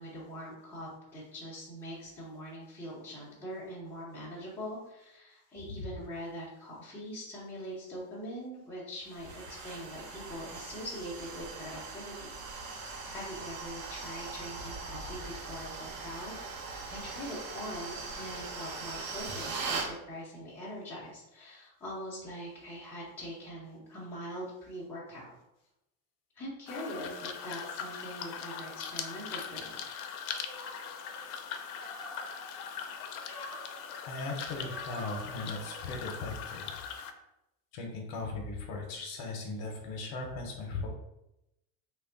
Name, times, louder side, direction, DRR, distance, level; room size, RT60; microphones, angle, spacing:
voice 1, 0.0-12.8 13.1-16.4 16.9-25.3 26.4-29.8, equal, 5° left, -8 dB, 0.7 m, -43 dB
sound 1, 9.1-19.9, right 4 dB, 65° right, 0.8 m, -40 dB
sound 2, 26.7-37.1, left 7 dB, 75° left, 0.6 m, -41 dB
sound 3, 30.3-36.2, right 1 dB, 35° right, 1.1 m, -49 dB
voice 2, 34.1-36.8 37.7-40.9, left 3 dB, 55° left, 1 dB, 0.8 m, -38 dB
3.1 x 2.3 x 3.8 m, 0.87 s
cardioid pair, 170°, 44 cm